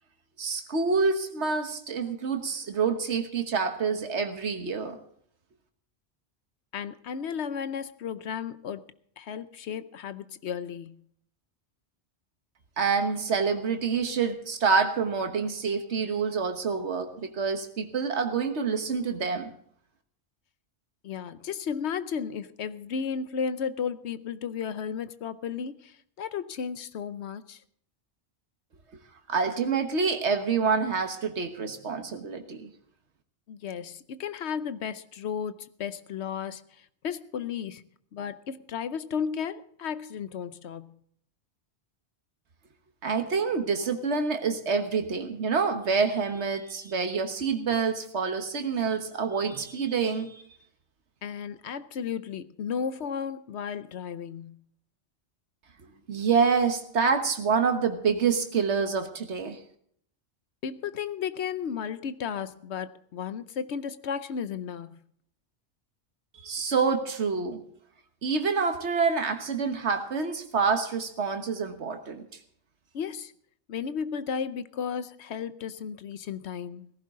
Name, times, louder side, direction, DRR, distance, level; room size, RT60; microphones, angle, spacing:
voice 1, 0.4-5.0 12.8-19.5 29.3-32.7 43.0-50.4 56.1-59.6 66.4-67.6 68.2-72.2, right 5 dB, 90° right, 1.6 m, -27 dB
voice 2, 6.7-8.9 9.2-11.0 21.0-27.6 33.5-37.8 38.1-40.9 51.2-54.6 60.6-65.0 72.9-73.3 73.7-76.9, left 7 dB, 80° left, 1.0 m, -34 dB
17.5 x 15.5 x 3.7 m
omnidirectional pair, 1.1 m